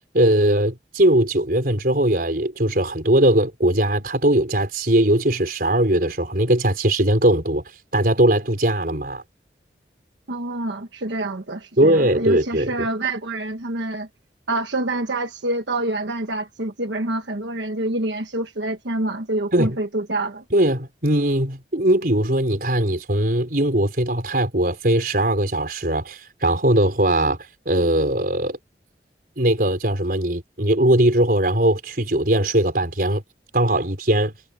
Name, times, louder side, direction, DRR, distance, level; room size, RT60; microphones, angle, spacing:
voice 1, 0.1-7.6 7.9-9.2 11.8-12.9 19.5-19.8 20.5-27.4 27.6-28.6 29.4-33.2 33.5-34.3, right 1 dB, 55° right, 4.9 m, -20 dB
voice 2, 10.3-14.1 14.5-20.4, right 2 dB, 90° right, 1.4 m, -26 dB
head